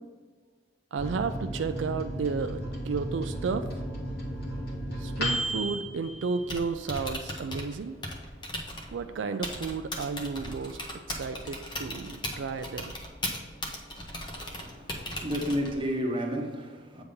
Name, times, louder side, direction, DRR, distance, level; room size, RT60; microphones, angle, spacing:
voice 1, 0.9-3.7 5.0-8.0 8.9-10.8 11.1-12.9, right 5 dB, 85° right, 0.4 m, -32 dB
Microwave oven, 1.0-7.1 7.5-7.6 7.8-8.4, equal, 60° left, 1.6 m, -34 dB
Typing, 6.3-15.9, left 1 dB, 25° left, 1.0 m, -38 dB
voice 2, 14.5-17.0, equal, 30° right, 1.0 m, -32 dB
8.1 x 3.5 x 5.4 m
head